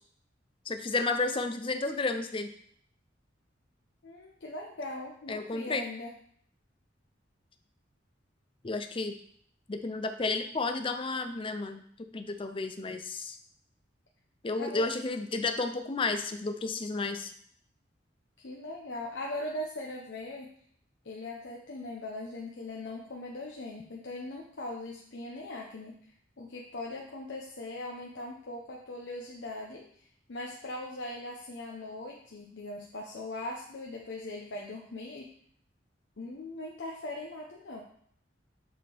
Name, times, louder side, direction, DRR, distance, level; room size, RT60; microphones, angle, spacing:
voice 1, 0.7-2.5 5.3-5.9 8.6-9.2 9.7-11.8 12.1-13.4 14.4-17.3, left 3 dB, 30° left, 7 dB, 0.5 m, -32 dB
voice 2, 4.0-6.1 14.6-15.0 18.4-20.5 21.0-26.1 26.4-35.3 36.2-37.8, left 2 dB, 70° left, -1 dB, 0.7 m, -40 dB
7.2 x 3.6 x 4.5 m, 0.63 s
head